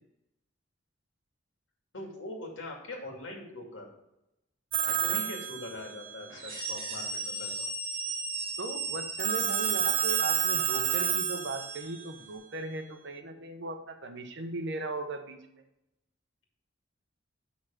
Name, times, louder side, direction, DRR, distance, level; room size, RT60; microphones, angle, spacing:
voice 1, 1.9-3.9 5.0-7.6, left 1 dB, 75° left, 0 dB, 2.3 m, -42 dB
Telephone, 4.7-6.2 9.2-12.0, right 9 dB, 45° right, 0.5 m, -29 dB
voice 2, 4.9-5.2 8.6-15.6, right 3 dB, 65° right, 6 dB, 1.0 m, -38 dB
sound 1, 6.3-12.0, right 3 dB, 30° right, 2.9 m, -37 dB
6.4 x 5.7 x 5.8 m, 0.87 s
head